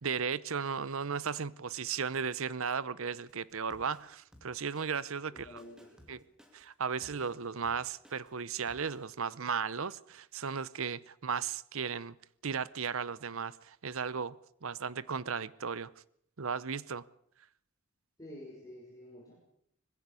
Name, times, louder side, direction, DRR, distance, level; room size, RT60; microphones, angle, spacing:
voice 1, 0.0-5.6 6.1-6.2 6.5-12.1 12.4-14.3 14.6-15.9 16.4-17.0, right 6 dB, 70° right, 0.8 m, -35 dB
Drum kit, 3.2-9.1, equal, 5° right, 2.5 m, -59 dB
voice 2, 5.3-6.3 18.2-19.3, left 1 dB, 15° left, 6.3 m, -50 dB
20.5 x 16.0 x 8.4 m
head